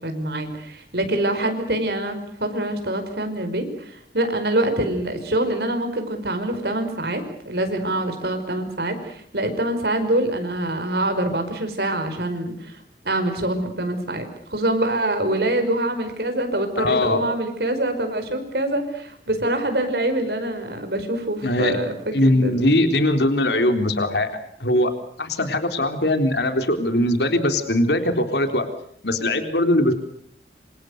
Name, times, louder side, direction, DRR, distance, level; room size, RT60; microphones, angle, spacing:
voice 1, 0.0-12.8 13.0-14.2 14.5-21.9 22.2-22.8, right 1 dB, 65° right, 7 dB, 5.1 m, -25 dB
voice 2, 16.8-17.2 21.4-21.8 22.1-24.3 24.6-24.9 25.2-28.7 29.0-29.9, left 1 dB, 75° left, 7 dB, 3.8 m, -20 dB
28.0 x 27.0 x 6.7 m, 0.63 s
head